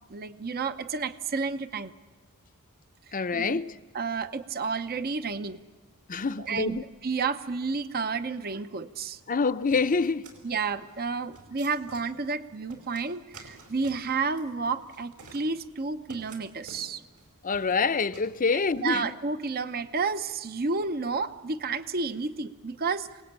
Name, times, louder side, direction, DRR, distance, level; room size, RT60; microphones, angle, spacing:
voice 1, 0.1-1.9 3.3-3.6 3.9-5.6 6.4-9.2 10.4-17.0 18.8-23.1, right 4 dB, 45° right, 0.8 m, -31 dB
voice 2, 3.1-3.7 6.1-6.8 9.3-10.3 17.4-19.1, left 4 dB, 35° left, 0.7 m, -26 dB
sound 1, 9.7-18.9, right 3 dB, 75° right, 5.2 m, -52 dB
27.5 x 19.0 x 8.8 m
head